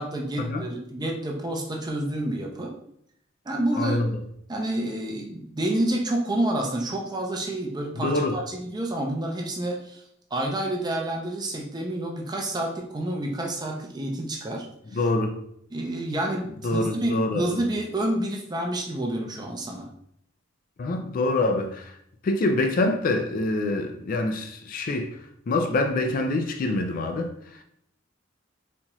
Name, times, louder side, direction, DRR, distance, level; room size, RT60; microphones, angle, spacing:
voice 1, 0.0-2.7 3.5-4.0 4.5-10.0 10.3-14.7 15.7-19.9, right 1 dB, 20° right, 0.5 m, -29 dB
voice 2, 3.8-4.2 7.9-8.4 14.9-15.4 16.6-17.6 20.8-22.0 22.2-25.2 25.5-27.6, left 2 dB, 45° left, 0.4 m, -26 dB
4.2 x 2.4 x 2.9 m
head